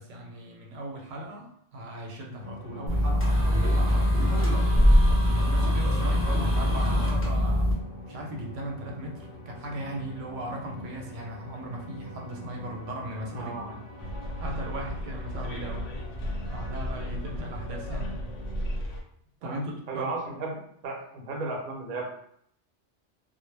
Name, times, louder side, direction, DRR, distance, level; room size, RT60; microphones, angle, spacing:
voice 1, 0.0-4.8 5.1-7.7 8.1-13.8 14.4-15.9 16.5-18.2 19.4-20.1, right 1 dB, 85° right, 1 dB, 0.9 m, -38 dB
sound 1, 2.4-18.7, left 1 dB, 55° left, 0.7 m, -44 dB
sound 2, 2.9-7.7, equal, 20° left, 0.3 m, -22 dB
voice 2, 13.3-13.8 19.4-19.6 19.9-20.5 20.8-22.0, right 3 dB, 55° right, 0 dB, 0.7 m, -34 dB
Bus, 14.0-19.0, equal, 85° left, 0.9 m, -35 dB
2.1 x 2.1 x 3.1 m, 0.67 s
omnidirectional pair, 1.2 m